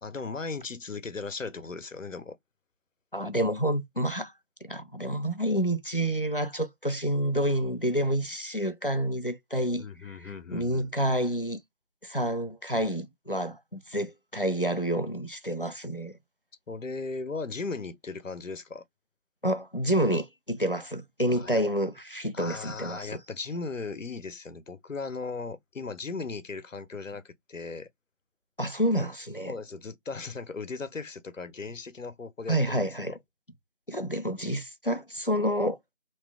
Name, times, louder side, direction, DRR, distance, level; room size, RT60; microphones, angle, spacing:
voice 1, 0.0-2.4 9.7-10.9 16.7-18.8 21.3-21.6 22.3-27.9 29.4-33.2, left 4 dB, 90° left, 0.8 m, -37 dB
voice 2, 3.1-4.3 4.6-11.6 12.0-16.2 19.4-23.2 28.6-29.6 32.5-33.2 33.9-35.8, right 1 dB, 45° left, 0.4 m, -29 dB
2.9 x 2.0 x 3.4 m
figure-of-eight pair, 175°, 37 cm